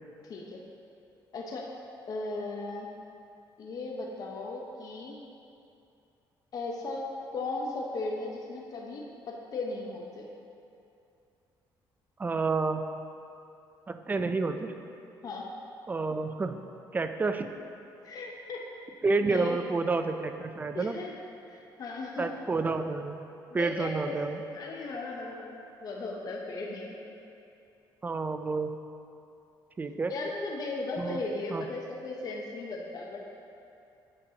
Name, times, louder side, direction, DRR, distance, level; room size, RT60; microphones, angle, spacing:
voice 1, 0.2-0.6 1.3-1.7 2.1-2.9 3.6-5.2 6.5-9.0 9.5-10.3 15.2-15.5 18.0-18.6 19.2-19.6 20.7-21.1 21.5-22.3 23.5-24.2 24.5-27.1 30.1-33.3, left 3 dB, 45° left, -1 dB, 0.7 m, -36 dB
voice 2, 12.2-12.8 13.9-14.7 15.9-16.6 16.9-17.5 19.0-21.0 22.2-23.2 23.5-24.4 28.0-28.7 29.8-30.1 31.0-31.2 31.5-31.7, right 3 dB, 20° right, 8 dB, 0.3 m, -29 dB
8.6 x 6.5 x 2.8 m, 2.7 s
cardioid pair, 110°, 8 cm